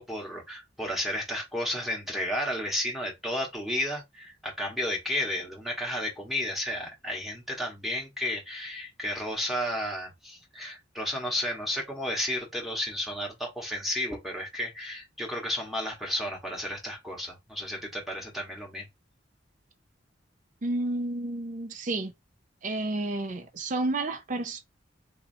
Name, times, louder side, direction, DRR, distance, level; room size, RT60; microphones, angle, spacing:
voice 1, 0.0-18.9, left 1 dB, ahead, 1.1 m, -32 dB
voice 2, 20.6-22.1 22.6-24.6, right 2 dB, 40° right, 0.5 m, -31 dB
4.1 x 2.7 x 2.6 m
head